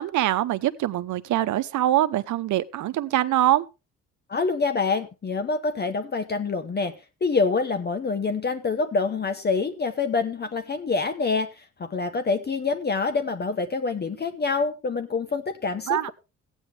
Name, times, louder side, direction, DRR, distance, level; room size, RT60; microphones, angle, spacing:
voice 1, 0.0-3.6 15.9-16.1, right 13 dB, 75° right, 0.9 m, -23 dB
voice 2, 4.3-6.9 7.2-16.1, left 4 dB, 35° left, 1.0 m, -26 dB
15.0 x 9.2 x 3.4 m
cardioid pair, 90°, 30 cm